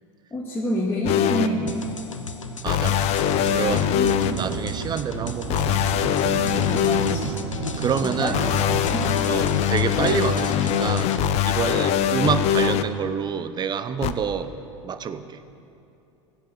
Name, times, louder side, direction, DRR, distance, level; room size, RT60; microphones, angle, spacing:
voice 1, 0.3-1.7 3.9-4.5 6.6-7.4 8.0-8.4 8.7-9.1, equal, 15° left, -7 dB, 2.3 m, -28 dB
sound 1, 1.0-1.5 2.7-4.3 5.5-7.1 8.3-12.8 14.0-14.1, left 10 dB, 40° left, 0.7 m, -22 dB
sound 2, 1.7-11.3, left 3 dB, 90° left, 0.7 m, -34 dB
voice 2, 2.6-3.2 3.5-5.8 7.8-8.4 9.3-11.2 11.4-14.6 14.8-15.4, right 7 dB, 25° right, 11 dB, 0.8 m, -27 dB
sound 3, 3.2-8.8, right 15 dB, 45° right, 0.4 m, -34 dB
15.0 x 8.1 x 8.0 m, 2.7 s
figure-of-eight pair, 80°, 16 cm